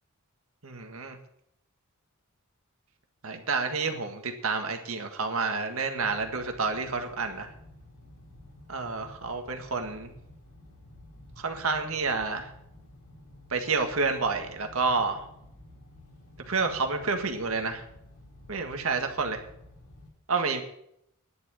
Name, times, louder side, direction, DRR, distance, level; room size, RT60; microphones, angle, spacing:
voice 1, 0.6-1.2 3.2-7.5 8.7-10.1 11.4-12.5 13.5-15.2 16.5-17.8 18.5-19.4 20.3-20.6, right 4 dB, 70° right, 5 dB, 1.7 m, -29 dB
sound 1, 6.0-20.1, left 1 dB, 80° left, 3.6 m, -52 dB
11.0 x 7.8 x 8.8 m, 0.75 s
head